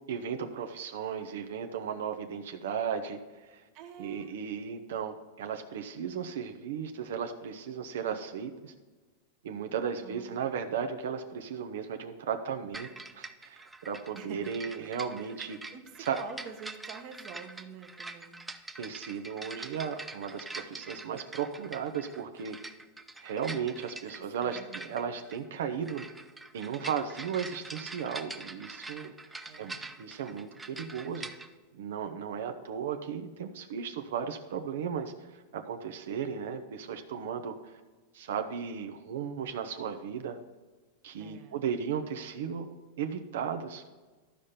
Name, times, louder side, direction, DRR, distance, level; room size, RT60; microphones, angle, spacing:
voice 1, 0.1-3.6 4.0-8.7 9.4-12.9 13.1-15.7 16.0-16.2 18.8-22.6 23.2-26.0 26.5-29.1 29.6-31.3 31.7-37.8 38.1-40.4 41.0-43.9, right 7 dB, 80° right, 6 dB, 0.9 m, -35 dB
voice 2, 3.7-4.3 10.0-10.4 14.1-14.5 15.7-18.4 24.1-25.1 29.4-29.9 41.2-41.6, right 7 dB, 35° right, 4 dB, 1.1 m, -47 dB
sound 1, 12.7-31.5, right 3 dB, 5° right, 0.4 m, -44 dB
13.0 x 5.1 x 4.3 m, 1.3 s
supercardioid pair, 165°, 0 cm